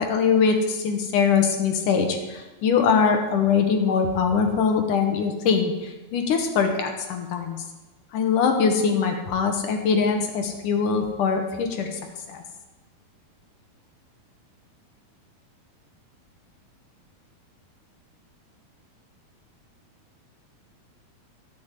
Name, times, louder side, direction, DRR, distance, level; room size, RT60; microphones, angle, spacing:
voice 1, 0.0-7.6 8.1-12.0 12.3-12.4, left 6 dB, 65° left, 5 dB, 2.6 m, -22 dB
12.5 x 8.4 x 9.2 m, 1.1 s
omnidirectional pair, 4.5 m